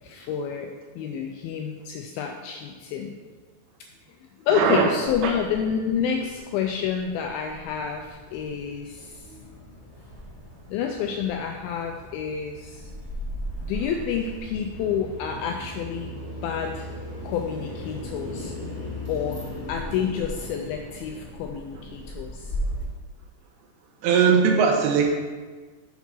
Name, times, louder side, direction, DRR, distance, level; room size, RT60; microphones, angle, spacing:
voice 1, 0.0-3.1 4.4-9.2 10.7-12.9 13.6-16.2 16.4-16.9 17.2-18.5 19.1-19.4 19.7-22.6, left 7 dB, 85° left, 3 dB, 2.1 m, -29 dB
voice 2, 4.5-4.9 5.2-5.3 24.0-25.1, right 6 dB, 85° right, 2 dB, 2.6 m, -19 dB
sound 1, 5.1-22.9, equal, 15° left, 1.3 m, -37 dB
6.8 x 5.9 x 4.4 m, 1.4 s
omnidirectional pair, 4.7 m